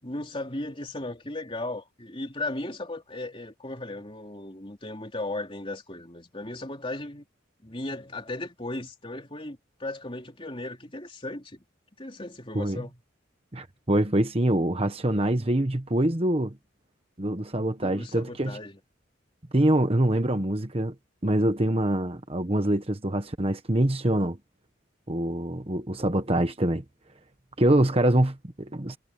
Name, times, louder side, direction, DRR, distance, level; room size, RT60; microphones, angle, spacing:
voice 1, 0.0-7.3 7.6-11.6 12.0-13.0 17.6-18.8, left 2 dB, 25° left, 3.4 m, -36 dB
voice 2, 13.5-16.6 17.2-18.6 19.5-20.9 21.2-24.4 25.1-26.8 27.6-29.0, right 1 dB, 30° right, 1.2 m, -24 dB
head